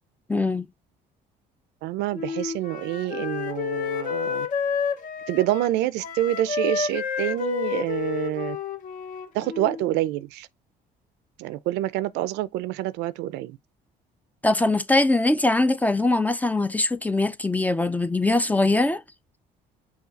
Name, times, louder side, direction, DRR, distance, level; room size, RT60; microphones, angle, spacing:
voice 1, 0.3-0.7 14.4-19.0, left 2 dB, 10° left, 0.3 m, -22 dB
voice 2, 1.8-4.5 5.3-8.6 9.3-10.5 11.4-13.6, right 14 dB, 90° right, 0.4 m, -27 dB
Wind instrument woodwind instrument, 2.1-9.9, left 7 dB, 50° left, 0.7 m, -30 dB
5.7 x 2.3 x 3.9 m
cardioid pair, 110°, 17 cm